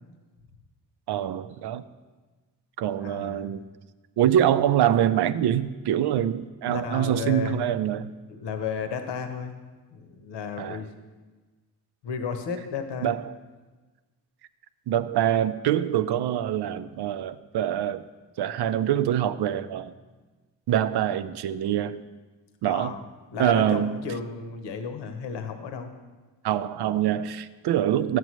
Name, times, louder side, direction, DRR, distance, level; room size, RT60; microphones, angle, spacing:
voice 1, 1.1-1.8 2.8-3.6 4.2-8.1 10.6-10.8 13.0-13.3 14.9-18.1 18.4-19.9 20.7-22.0 22.6-22.9 23.4-24.0 26.4-28.2, right 10 dB, 65° right, 13 dB, 0.5 m, -25 dB
voice 2, 3.0-3.5 6.7-7.6 8.3-9.5 9.9-10.9 12.0-13.1 22.6-23.0 23.3-25.9, left 6 dB, 70° left, 6 dB, 1.0 m, -33 dB
10.5 x 7.7 x 3.1 m, 1.3 s
supercardioid pair, 60°, 43 cm